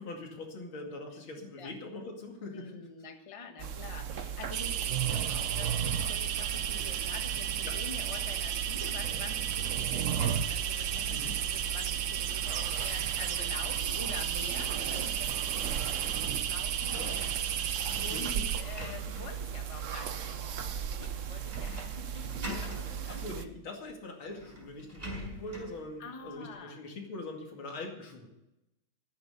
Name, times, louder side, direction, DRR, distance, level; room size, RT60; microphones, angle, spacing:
voice 1, 0.0-2.9 7.6-7.8 11.1-11.4 16.9-17.2 18.0-18.4 23.1-28.3, left 2 dB, 80° left, 2 dB, 3.2 m, -42 dB
voice 2, 2.5-17.2 17.5-23.2 26.0-26.8, left 4 dB, 20° left, 5 dB, 1.2 m, -46 dB
sound 1, 3.6-23.5, right 8 dB, 55° right, 0.9 m, -36 dB
sound 2, 4.5-18.6, right 10 dB, 70° right, 1.5 m, -34 dB
sound 3, 16.9-19.5 20.0-20.1 21.5-22.0 22.2-22.9 23.9-24.0 24.3-25.8, equal, 25° right, 5.2 m, -44 dB
13.5 x 9.6 x 6.8 m, 0.90 s
omnidirectional pair, 2.2 m